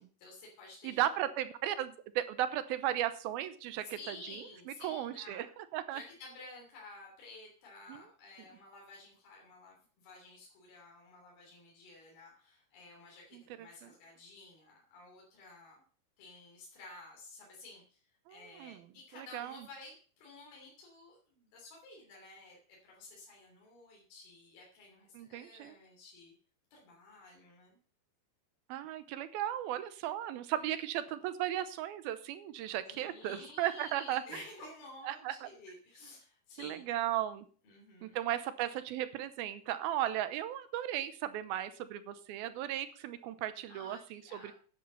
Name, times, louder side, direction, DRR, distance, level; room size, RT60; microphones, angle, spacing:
voice 1, 0.0-1.0 3.9-5.4 5.9-15.8 16.2-26.3 26.7-27.8 30.5-30.7 32.9-36.9 37.6-38.2 43.7-44.5, left 3 dB, 75° left, -2 dB, 5.2 m, -53 dB
voice 2, 0.8-4.2 4.8-5.5 5.7-6.0 7.9-8.0 13.3-13.9 18.3-18.8 19.3-19.5 25.2-25.7 28.7-34.2 35.1-35.5 36.6-37.5 38.0-44.5, right 12 dB, 80° right, 12 dB, 2.7 m, -36 dB
11.0 x 9.8 x 5.6 m, 0.42 s
omnidirectional pair, 4.4 m